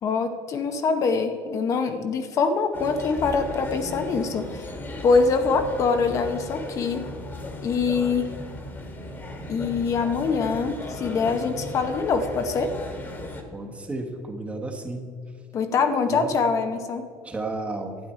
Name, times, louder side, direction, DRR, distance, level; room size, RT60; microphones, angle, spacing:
voice 1, 0.0-4.8 5.0-7.1 7.6-8.3 9.5-12.7 15.5-17.1, left 4 dB, 45° left, 6 dB, 0.8 m, -24 dB
sound 1, 2.7-13.4, left 1 dB, 25° left, 1.6 m, -36 dB
voice 2, 13.5-15.1 16.1-16.3 17.2-18.0, right 2 dB, 15° right, 3 dB, 1.3 m, -32 dB
12.0 x 8.5 x 4.4 m, 2.2 s
cardioid pair, 130°, 8 cm